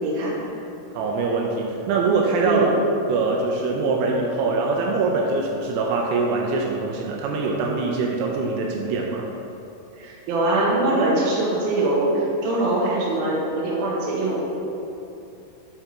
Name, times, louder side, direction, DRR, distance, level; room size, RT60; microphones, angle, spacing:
voice 1, 0.0-0.4 2.4-2.7 10.0-14.5, right 2 dB, 65° right, -6 dB, 2.5 m, -22 dB
voice 2, 1.0-2.8 3.1-9.3, right 3 dB, 85° right, 0 dB, 3.2 m, -23 dB
7.7 x 4.6 x 4.3 m, 2.9 s
omnidirectional pair, 5.9 m